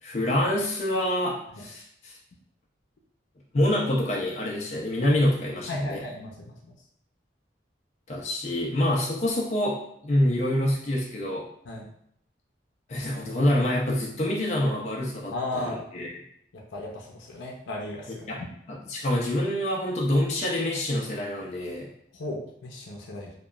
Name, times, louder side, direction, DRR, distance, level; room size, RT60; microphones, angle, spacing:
voice 1, 0.0-2.2 3.5-6.0 8.1-11.5 12.9-16.1 18.3-18.4 18.7-21.9, left 1 dB, 35° left, -3 dB, 0.4 m, -26 dB
voice 2, 5.7-6.7 11.7-11.9 15.3-15.8 16.5-18.5 22.1-23.3, left 2 dB, 90° left, -1 dB, 0.5 m, -36 dB
2.9 x 2.2 x 2.3 m, 0.69 s
head